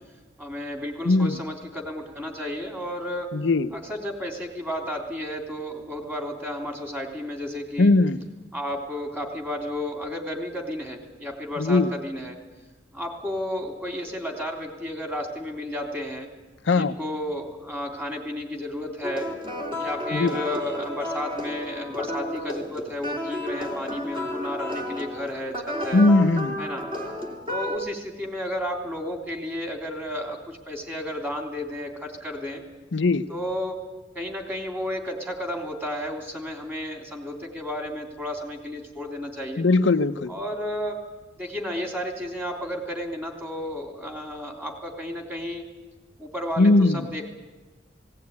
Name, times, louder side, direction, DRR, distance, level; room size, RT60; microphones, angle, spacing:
voice 1, 0.4-3.3 3.7-7.9 8.5-12.4 12.9-16.3 16.7-19.3 19.8-26.0 26.6-26.8 27.5-32.6 33.3-33.8 34.1-39.6 40.3-41.0 41.4-45.6 46.2-47.3, left 1 dB, 10° right, 2 dB, 3.3 m, -32 dB
voice 2, 1.0-1.4 3.3-3.7 7.8-8.2 11.6-11.9 16.6-16.9 20.1-20.4 25.9-26.6 32.9-33.3 39.6-40.3 46.6-47.1, left 2 dB, 65° left, 8 dB, 0.6 m, -19 dB
sound 1, 19.0-27.8, left 1 dB, 30° right, 2.8 m, -32 dB
19.0 x 17.5 x 9.5 m, 1.2 s
head